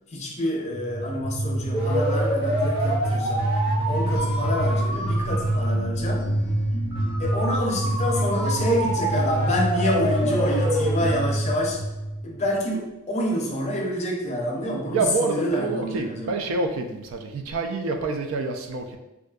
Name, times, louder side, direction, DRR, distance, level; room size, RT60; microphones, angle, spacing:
voice 1, 0.1-6.3 7.2-11.8 12.2-16.4, equal, 35° left, 0 dB, 0.5 m, -27 dB
sound 1, 0.7-12.5, right 1 dB, 25° right, 0.7 m, -25 dB
sound 2, 3.7-12.4, left 1 dB, 75° left, 0.6 m, -38 dB
voice 2, 14.9-19.0, right 3 dB, 70° right, 5 dB, 0.4 m, -27 dB
3.5 x 2.4 x 2.2 m, 0.96 s
head